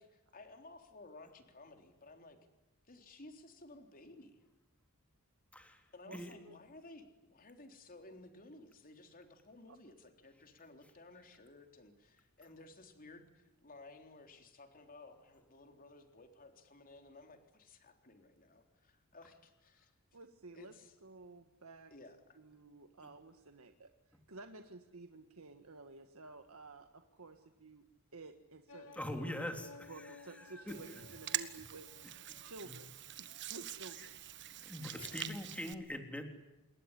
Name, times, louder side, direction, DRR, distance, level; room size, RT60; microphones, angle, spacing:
voice 1, 0.0-2.4 2.9-4.5 5.9-19.9 20.5-20.9 21.9-22.4 34.9-35.2, left 2 dB, 40° left, 5 dB, 3.7 m, -56 dB
voice 2, 6.0-6.6 9.7-9.8 20.1-20.7 21.0-21.9 22.3-27.9 28.1-29.4 29.9-31.9 32.4-32.9 33.2-34.2, right 3 dB, 70° right, 7 dB, 1.7 m, -53 dB
sound 1, 28.7-32.6, left 4 dB, 70° left, 1.9 m, -57 dB
voice 3, 29.0-29.7 30.4-30.7 32.7-32.8 34.6-36.3, left 1 dB, 5° left, 5 dB, 3.4 m, -42 dB
Hands, 30.7-35.7, right 12 dB, 55° right, 1.5 m, -44 dB
27.5 x 21.0 x 10.0 m, 1.0 s
head